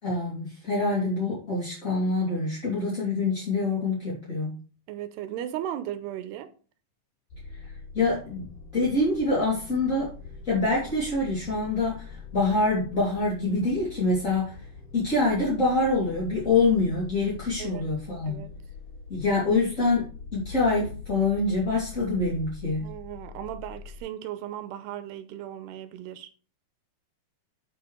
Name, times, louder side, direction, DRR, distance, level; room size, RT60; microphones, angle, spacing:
voice 1, 0.0-4.6 7.5-10.1 10.4-14.7 14.9-18.4 19.1-22.9, left 3 dB, 20° left, 2.9 m, -26 dB
voice 2, 4.9-6.5 17.6-17.9 18.3-18.5 22.8-26.3, right 11 dB, 80° right, 2.8 m, -36 dB
sound 1, 7.3-24.0, left 5 dB, 85° left, 5.7 m, -43 dB
9.1 x 8.0 x 3.3 m
omnidirectional pair, 4.9 m